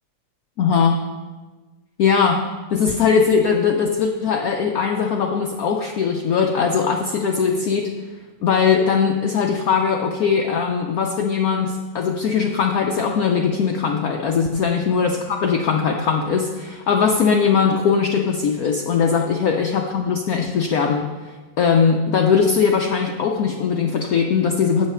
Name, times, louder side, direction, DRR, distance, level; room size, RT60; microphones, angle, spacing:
voice 1, 0.6-1.0 2.0-2.4 2.7-7.9 8.4-21.1 21.6-24.9, left 6 dB, 65° left, 2 dB, 0.9 m, -20 dB
8.0 x 7.5 x 5.6 m, 1.3 s
omnidirectional pair, 2.1 m